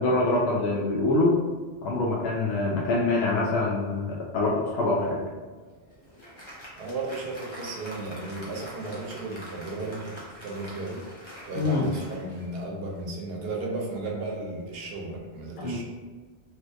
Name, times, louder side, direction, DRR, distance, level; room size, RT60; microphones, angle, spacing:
voice 1, 0.0-1.4 1.8-5.2 11.6-11.8 15.6-15.8, left 2 dB, 80° left, -3 dB, 0.8 m, -25 dB
Applause, 5.6-13.1, equal, 30° left, 0.7 m, -45 dB
voice 2, 6.8-11.1 11.5-15.8, right 2 dB, 70° right, 0 dB, 0.8 m, -34 dB
3.3 x 2.7 x 2.5 m, 1.4 s
omnidirectional pair, 1.1 m